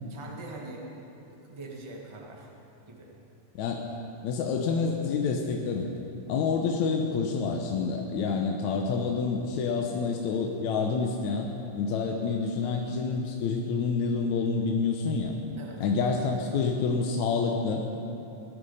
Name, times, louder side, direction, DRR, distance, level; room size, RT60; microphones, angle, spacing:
voice 1, 0.1-0.8 1.3-2.5 2.9-3.1 15.6-15.9, right 2 dB, 50° right, -1 dB, 0.3 m, -43 dB
voice 2, 4.2-5.9 6.3-11.5 11.7-15.3 15.8-17.8, left 5 dB, 70° left, 1 dB, 2.0 m, -28 dB
19.0 x 12.5 x 5.5 m, 2.9 s
omnidirectional pair, 4.0 m